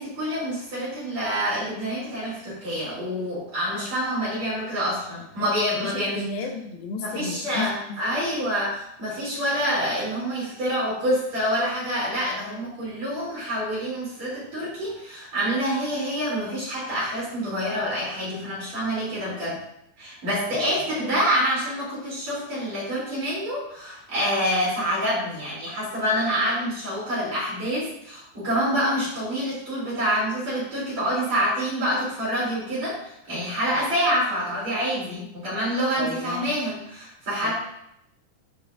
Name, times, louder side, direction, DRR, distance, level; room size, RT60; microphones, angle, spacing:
voice 1, 0.0-6.2 7.0-19.6 20.0-37.5, equal, 45° right, -8 dB, 4.6 m, -27 dB
voice 2, 5.8-8.0 20.5-20.9 36.0-36.6 37.4-37.5, left 4 dB, 75° left, 4 dB, 2.4 m, -33 dB
12.0 x 5.5 x 2.7 m, 0.77 s
omnidirectional pair, 4.7 m